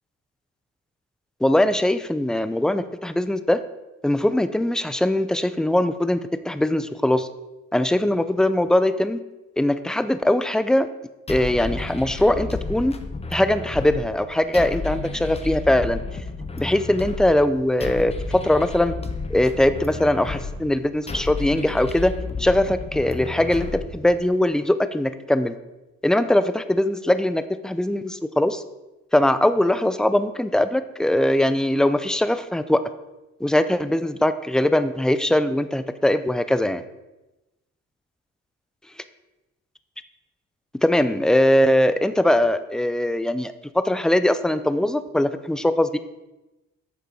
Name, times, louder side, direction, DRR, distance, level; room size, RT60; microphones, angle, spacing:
voice 1, 1.4-3.6 4.0-7.3 7.7-9.2 9.6-10.9 11.3-12.9 13.3-16.0 16.6-18.9 19.3-22.1 22.4-25.6 26.0-28.6 29.1-32.8 33.4-36.8 40.8-46.0, left 1 dB, ahead, 11 dB, 0.5 m, -21 dB
sound 1, 11.3-24.3, left 4 dB, 20° left, 0.9 m, -32 dB
10.0 x 6.7 x 4.9 m, 1.0 s
cardioid pair, 90°, 30 cm